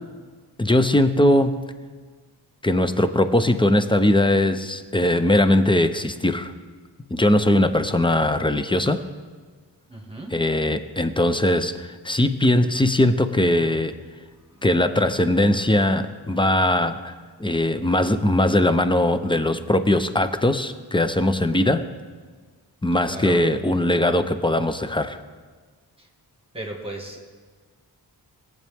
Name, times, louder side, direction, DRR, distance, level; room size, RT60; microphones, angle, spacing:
voice 1, 0.6-1.7 2.6-6.5 7.1-9.0 10.3-13.9 14.6-17.1 17.4-21.9 22.8-25.2, left 1 dB, 10° left, 10 dB, 0.7 m, -20 dB
voice 2, 9.9-10.3 14.5-14.7 23.1-23.4 26.0-26.1 26.5-27.4, right 1 dB, 15° right, 0 dB, 2.1 m, -35 dB
18.5 x 7.9 x 3.6 m, 1.5 s
cardioid pair, 45°, 42 cm